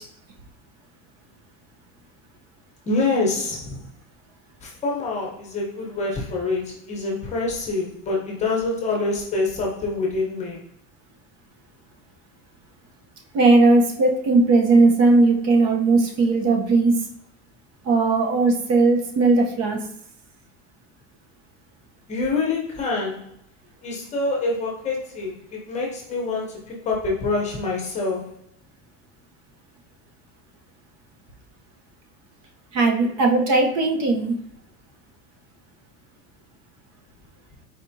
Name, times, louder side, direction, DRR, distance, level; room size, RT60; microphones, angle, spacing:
voice 1, 2.9-3.9 4.6-10.6 22.1-23.3 23.8-28.3, left 3 dB, 20° left, -1 dB, 0.9 m, -26 dB
voice 2, 13.3-17.0 17.8-19.8 32.7-34.4, right 3 dB, 55° right, 2 dB, 0.9 m, -18 dB
4.3 x 3.3 x 2.7 m, 0.73 s
cardioid pair, 175°, 31 cm